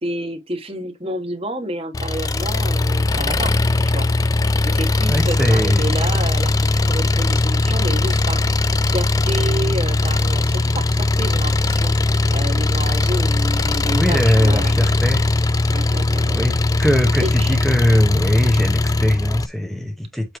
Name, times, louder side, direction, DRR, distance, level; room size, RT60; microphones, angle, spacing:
voice 1, 0.0-3.5 3.8-4.1 4.6-8.4 8.9-11.9 12.3-14.9 15.7-16.4 17.2-17.5, right 1 dB, 30° right, 1.3 m, -29 dB
Engine, 1.9-19.5, left 2 dB, 20° left, 0.3 m, -19 dB
voice 2, 5.1-5.9 13.9-15.3 16.3-20.4, equal, ahead, 0.8 m, -21 dB
7.8 x 3.2 x 4.6 m
head